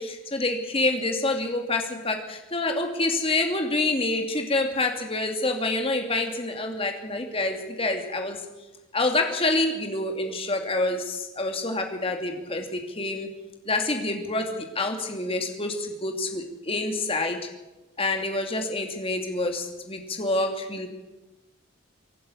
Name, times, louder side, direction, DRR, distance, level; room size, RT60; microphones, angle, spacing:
voice 1, 0.0-8.4 8.9-13.3 13.7-17.4 18.0-20.9, left 2 dB, 25° left, 4 dB, 2.6 m, -27 dB
23.5 x 11.5 x 9.9 m, 1.1 s
head